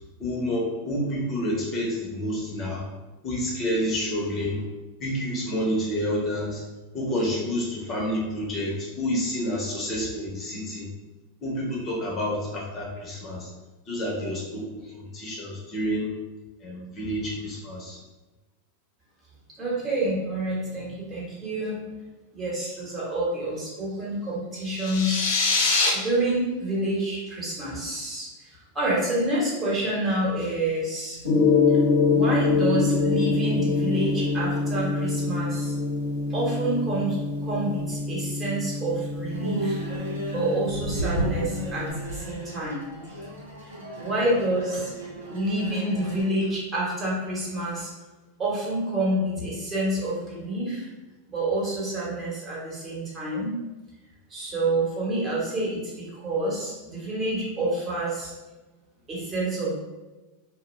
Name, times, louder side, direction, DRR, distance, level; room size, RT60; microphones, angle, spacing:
voice 1, 0.2-2.8 3.2-4.6 5.0-6.6 6.9-10.9 11.4-13.5 13.9-16.1 16.6-18.0, equal, 35° left, -3 dB, 0.8 m, -29 dB
voice 2, 19.6-21.8 22.3-25.2 25.9-31.2 32.0-35.7 36.3-42.8 43.8-44.9 45.3-47.9 48.4-50.9 51.3-53.6 54.3-58.3 59.1-59.8, right 1 dB, 25° right, -6 dB, 1.1 m, -28 dB
sound 1, 24.7-25.9, left 3 dB, 60° left, 0.5 m, -23 dB
Gong, 31.2-41.9, left 4 dB, 85° left, 0.8 m, -25 dB
sound 2, 39.3-46.2, equal, 90° right, 0.8 m, -33 dB
2.2 x 2.2 x 3.1 m, 1.1 s
hypercardioid pair, 95°, 0 cm